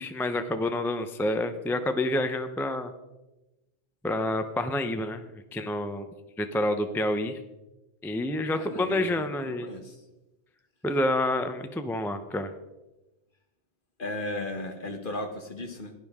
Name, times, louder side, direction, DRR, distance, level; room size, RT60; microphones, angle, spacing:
voice 1, 0.0-2.9 4.0-6.1 6.4-7.4 8.0-9.7 10.8-12.5, left 1 dB, 5° left, 8 dB, 0.4 m, -28 dB
voice 2, 8.5-10.0 14.0-15.9, left 2 dB, 45° left, 6 dB, 1.3 m, -36 dB
17.0 x 11.0 x 3.6 m, 1.0 s
omnidirectional pair, 1.3 m